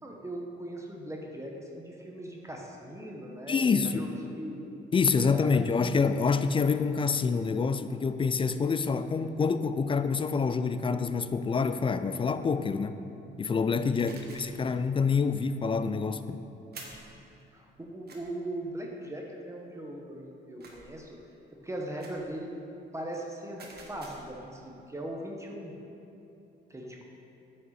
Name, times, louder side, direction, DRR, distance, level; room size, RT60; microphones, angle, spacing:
voice 1, 0.0-4.6 5.2-5.6 14.0-14.4 17.5-21.2 21.6-22.5 22.9-25.7 26.7-27.0, right 1 dB, 15° right, 0 dB, 1.0 m, -39 dB
voice 2, 3.5-4.0 4.9-13.0 13.4-16.4, left 5 dB, 25° left, 11 dB, 0.3 m, -27 dB
sound 1, 14.0-14.6 16.7-17.1 18.1-18.2 20.6-21.0 22.0-22.3 23.6-24.4, right 3 dB, 55° right, 1.4 m, -48 dB
9.1 x 5.4 x 4.2 m, 3.0 s
cardioid pair, 90°, 20 cm